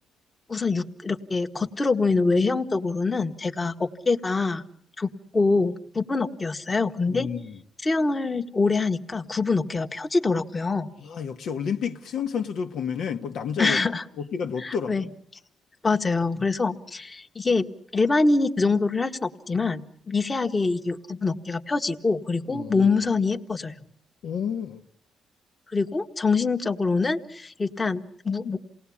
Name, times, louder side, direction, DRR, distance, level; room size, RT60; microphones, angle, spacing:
voice 1, 0.5-4.6 5.0-7.3 7.8-10.9 13.6-14.0 14.6-15.0 15.8-17.7 17.9-23.7 25.7-28.6, left 3 dB, 25° left, 1.3 m, -25 dB
voice 2, 7.1-7.6 11.0-13.8 14.2-15.1 22.5-22.9 24.2-24.8, left 7 dB, 70° left, 1.2 m, -30 dB
28.0 x 18.5 x 8.6 m
cardioid pair, 90°, 0 cm